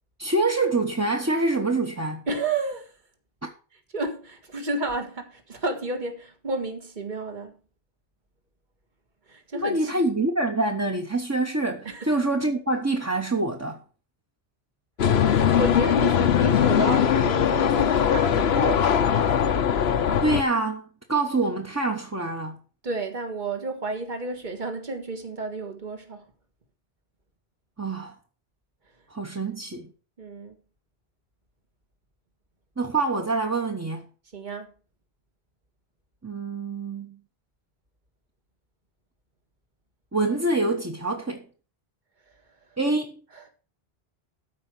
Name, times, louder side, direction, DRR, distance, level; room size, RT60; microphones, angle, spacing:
voice 1, 0.2-2.2 3.4-3.5 9.5-13.8 20.2-22.6 27.8-28.1 29.1-29.9 32.8-34.0 36.2-37.2 40.1-41.4 42.8-43.2, right 2 dB, 15° right, 1.0 m, -26 dB
voice 2, 2.3-2.9 3.9-7.5 9.3-9.9 11.9-12.2 15.0-19.5 22.8-26.2 30.2-30.6 34.3-34.7 43.3-43.4, right 2 dB, 45° right, 1.8 m, -31 dB
sound 1, 15.0-20.4, left 8 dB, 75° left, 1.0 m, -21 dB
13.5 x 5.0 x 6.2 m
omnidirectional pair, 1.1 m